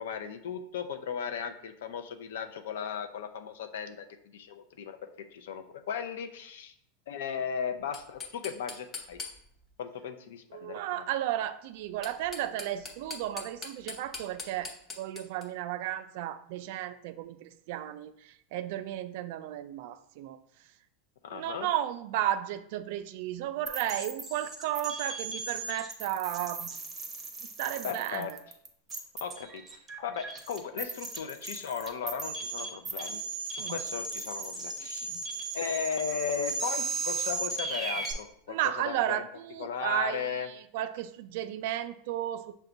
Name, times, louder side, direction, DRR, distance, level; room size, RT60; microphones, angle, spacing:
voice 1, 0.0-6.7 7.1-9.2 9.8-11.0 21.2-21.7 27.8-28.3 29.2-33.2 33.5-35.1 35.5-38.6 38.8-39.2 39.6-40.5, left 7 dB, 85° left, 8 dB, 0.5 m, -36 dB
sound 1, 7.8-9.7 11.8-15.5, left 4 dB, 25° left, 0.8 m, -42 dB
voice 2, 10.5-20.4 21.3-26.7 27.4-28.4 33.6-33.8 35.0-35.2 38.5-42.6, right 12 dB, 60° right, 12 dB, 0.3 m, -34 dB
sound 2, 23.7-38.1, right 4 dB, 15° right, 0.7 m, -36 dB
6.0 x 2.2 x 3.9 m, 0.69 s
supercardioid pair, 145°, 0 cm